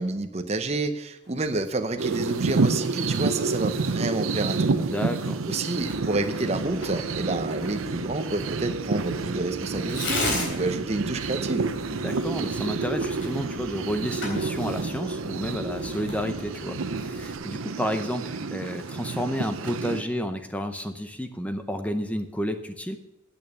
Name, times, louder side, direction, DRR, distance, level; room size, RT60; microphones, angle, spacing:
voice 1, 0.0-4.9 5.5-11.7, right 2 dB, 30° right, 7 dB, 0.7 m, -29 dB
sound 1, 1.2-17.5, left 1 dB, 30° left, 4.0 m, -55 dB
sound 2, 2.0-20.0, right 4 dB, 90° right, 0.7 m, -29 dB
voice 2, 4.9-5.4 11.9-23.0, equal, 5° left, 8 dB, 0.7 m, -31 dB
Tearing, 5.8-17.4, left 2 dB, 65° left, 3.8 m, -38 dB
9.1 x 8.7 x 6.9 m, 0.86 s
head